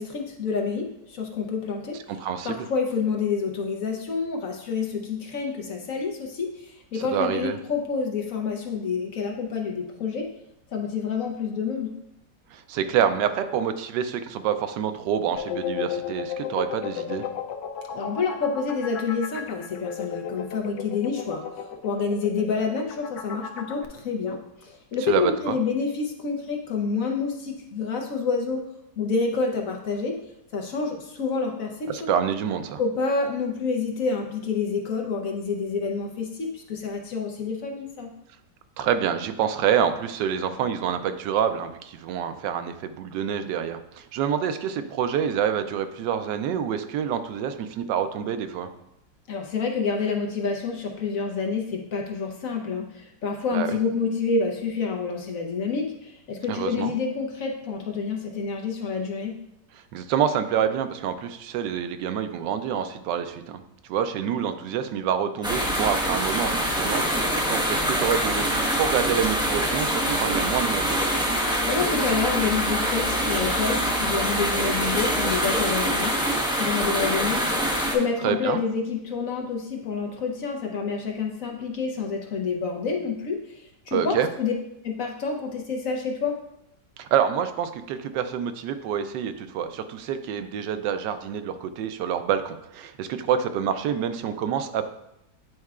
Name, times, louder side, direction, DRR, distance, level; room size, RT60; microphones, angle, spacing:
voice 1, 0.0-2.0 2.4-10.3 10.7-11.9 17.9-28.6 29.0-30.2 30.5-32.1 32.8-38.1 49.3-59.3 71.6-77.6 77.9-84.5 84.8-86.3, left 5 dB, 60° left, 2 dB, 1.0 m, -28 dB
voice 2, 2.1-2.7 6.9-7.6 12.5-17.2 25.1-25.6 31.9-32.8 38.8-48.7 53.5-53.8 56.5-56.9 59.9-63.6 63.9-71.0 78.2-78.6 83.9-84.3 87.0-94.9, right 8 dB, 85° right, 9 dB, 1.2 m, -27 dB
sound 1, 15.4-23.8, left 8 dB, 85° left, 1.3 m, -34 dB
sound 2, 65.4-77.9, equal, 5° right, 0.6 m, -25 dB
9.5 x 4.5 x 2.4 m, 0.80 s
omnidirectional pair, 1.9 m